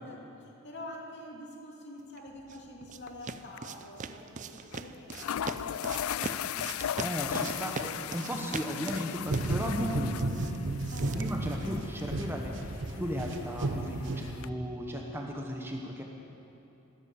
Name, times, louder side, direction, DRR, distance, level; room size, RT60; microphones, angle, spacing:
voice 1, 0.0-6.3 10.9-11.2, left 1 dB, 55° left, -2 dB, 2.8 m, -46 dB
sound 1, 2.2-12.2, right 4 dB, 35° right, 0.5 m, -42 dB
sound 2, 3.1-3.3 3.6-3.7 4.7-4.8 5.1-14.5, left 10 dB, 85° left, 0.4 m, -38 dB
voice 2, 7.0-10.5 11.1-12.7 12.9-16.0, equal, 10° right, 1 dB, 1.1 m, -35 dB
sound 3, 9.3-14.8, right 2 dB, 60° right, 0.9 m, -34 dB
15.5 x 12.5 x 7.1 m, 2.9 s
head